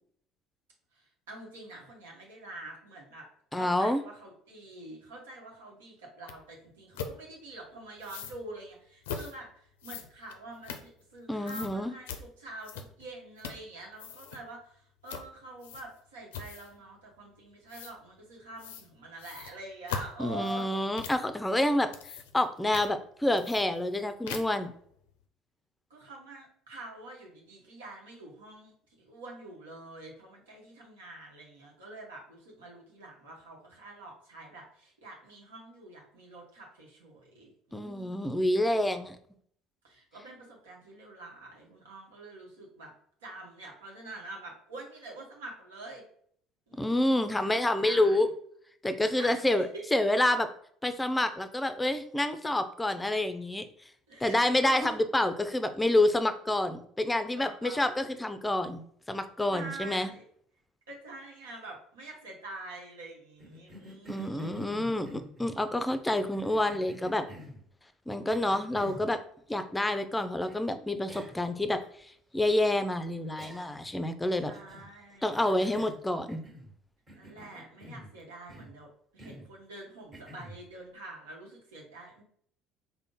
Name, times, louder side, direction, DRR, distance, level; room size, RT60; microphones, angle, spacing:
voice 1, 0.9-20.7 25.9-38.5 39.8-42.9 43.2-46.0 46.7-48.2 49.2-49.8 54.1-55.0 57.4-57.9 59.5-60.3 60.9-64.7 74.4-75.3 77.1-82.2, right 2 dB, 85° right, -1 dB, 0.9 m, -46 dB
voice 2, 3.5-4.0 11.3-11.9 20.2-21.9 22.3-24.7 37.7-39.2 46.7-48.3 48.8-50.5 50.8-53.7 54.2-60.1 64.1-67.2 68.1-69.2 69.5-74.5 75.2-76.4, left 1 dB, 10° left, 10 dB, 0.5 m, -28 dB
sound 1, 6.3-6.4 6.9-7.1 8.0-8.4 9.0-9.3 9.8-11.2 11.5-11.7 12.1-12.2 12.6-13.1 13.4-13.7 13.9-14.4 15.1-15.3 15.6-16.0 16.3-16.8 17.7-17.9 18.6-18.9 19.2-21.3 21.7-22.5 22.7-22.9 23.4-24.0 24.3-24.6, left 6 dB, 80° left, 0.4 m, -40 dB
Cough, 63.4-65.6 66.3-67.6 68.3-69.1 70.5-70.6 71.1-71.5 71.8-71.9 73.4-73.9 74.5-74.9 75.3-76.8 77.1-78.1 78.5-78.8 79.2-79.5 80.1-80.6, left 1 dB, 25° right, 1.3 m, -48 dB
3.7 x 2.1 x 3.7 m, 0.63 s
hypercardioid pair, 65°, 0 cm